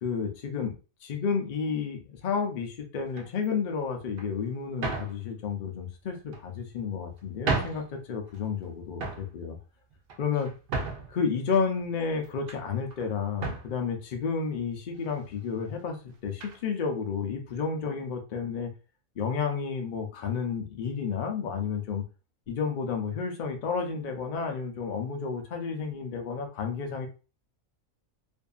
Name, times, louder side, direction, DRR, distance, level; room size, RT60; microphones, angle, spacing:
voice 1, 0.0-0.7 1.0-9.6 10.2-10.5 11.1-18.7 19.2-22.0 22.5-27.1, left 5 dB, 70° left, 3 dB, 0.4 m, -31 dB
sound 1, 3.1-3.5 4.2-4.3 4.8-5.2 6.1-6.7 7.2-7.3 7.5-7.9 8.3-8.7 8.9-9.3 9.9-11.2 11.8-12.6 12.9-13.1 13.4-13.7 14.5-14.6 15.0-15.1 16.4-16.6, right 4 dB, 60° right, 0.6 m, -34 dB
2.6 x 2.5 x 2.3 m, 0.33 s
omnidirectional pair, 1.5 m